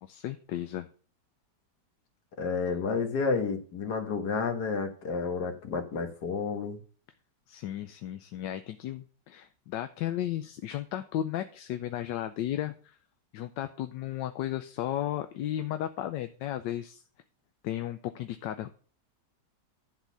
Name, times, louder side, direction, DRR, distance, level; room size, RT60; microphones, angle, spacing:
voice 1, 0.0-0.9 7.5-13.0 13.3-17.0 17.6-18.8, left 12 dB, 80° left, 9 dB, 1.3 m, -34 dB
voice 2, 2.4-6.8, left 5 dB, 65° left, 5 dB, 2.0 m, -30 dB
11.5 x 4.0 x 7.1 m, 0.42 s
omnidirectional pair, 1.9 m